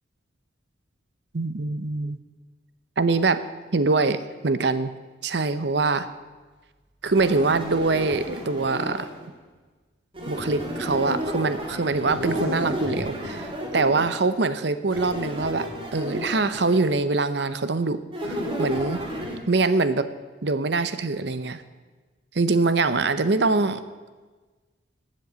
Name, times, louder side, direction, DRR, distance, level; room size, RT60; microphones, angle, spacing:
voice 1, 1.3-2.2 3.0-3.4 3.7-4.9 5.2-6.1 7.0-9.1 10.2-19.0 19.5-20.1 20.4-21.6 22.3-23.8, right 3 dB, 60° right, 12 dB, 0.7 m, -24 dB
sound 1, 7.1-9.3 10.1-14.3 14.9-17.0 18.1-19.4, equal, 25° right, 2.0 m, -32 dB
12.5 x 7.6 x 8.1 m, 1.3 s
head